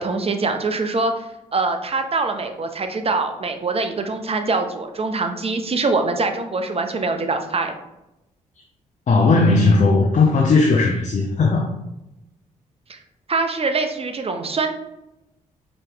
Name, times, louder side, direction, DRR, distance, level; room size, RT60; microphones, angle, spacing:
voice 1, 0.0-7.7 12.9-13.0 13.3-14.7, right 3 dB, 35° right, 6 dB, 0.7 m, -24 dB
voice 2, 9.1-11.7, left 3 dB, 45° left, 1 dB, 0.7 m, -16 dB
4.5 x 3.1 x 3.0 m, 0.90 s
hypercardioid pair, 40°, 16 cm